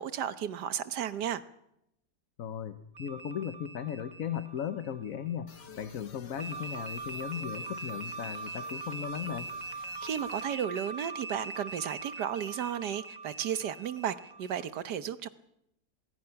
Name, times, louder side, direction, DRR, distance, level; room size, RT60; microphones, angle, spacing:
voice 1, 0.0-1.4 10.0-15.3, right 9 dB, 80° right, 13 dB, 1.6 m, -34 dB
voice 2, 2.4-9.5, left 9 dB, 60° left, 10 dB, 1.3 m, -37 dB
sound 1, 2.9-5.5 6.4-14.7, right 3 dB, 30° right, 1.1 m, -42 dB
sound 2, 5.5-10.5, left 6 dB, 90° left, 2.0 m, -52 dB
23.5 x 21.5 x 5.9 m, 0.81 s
omnidirectional pair, 1.8 m